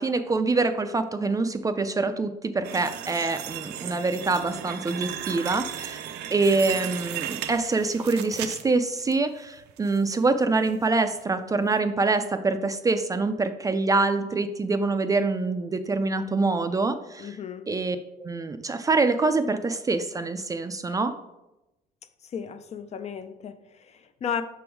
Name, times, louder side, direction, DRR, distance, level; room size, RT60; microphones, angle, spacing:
voice 1, 0.0-6.0 6.3-17.4 17.7-21.1, right 3 dB, 20° right, 9 dB, 0.4 m, -25 dB
sound 1, 2.6-9.1 9.6-10.2 10.5-10.7 11.2-11.3, right 10 dB, 80° right, 0.5 m, -36 dB
voice 2, 17.2-17.7 22.2-24.4, left 8 dB, 40° left, 11 dB, 0.5 m, -34 dB
6.0 x 3.5 x 4.6 m, 0.95 s
cardioid pair, 110°, 17 cm